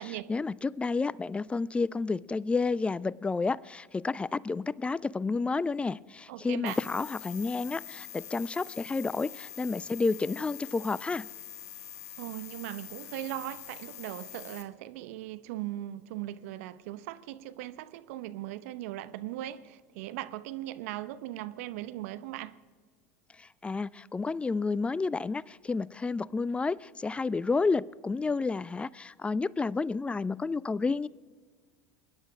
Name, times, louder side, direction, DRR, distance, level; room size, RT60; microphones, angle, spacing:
voice 1, 0.0-11.3 23.4-31.1, left 4 dB, 15° left, 0.4 m, -30 dB
voice 2, 6.3-6.8 12.2-22.6, right 14 dB, 70° right, 0.8 m, -39 dB
sound 1, 6.7-14.6, left 11 dB, 75° left, 1.7 m, -45 dB
23.5 x 10.5 x 4.9 m
hypercardioid pair, 80°, 8 cm